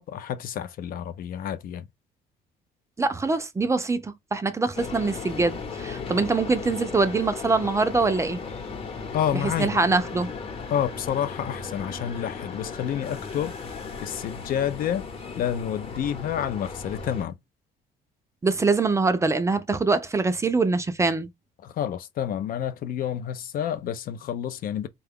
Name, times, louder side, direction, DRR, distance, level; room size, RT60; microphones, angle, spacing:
voice 1, 0.0-1.9 9.1-10.0 10.7-15.0 15.4-17.4 21.6-24.9, left 9 dB, 55° left, 0.4 m, -29 dB
voice 2, 3.0-8.4 9.4-10.3 18.4-21.3, right 3 dB, 15° right, 0.4 m, -24 dB
sound 1, 4.7-17.3, left 4 dB, 35° left, 0.9 m, -36 dB
3.7 x 2.3 x 3.5 m
cardioid pair, 110°, 17 cm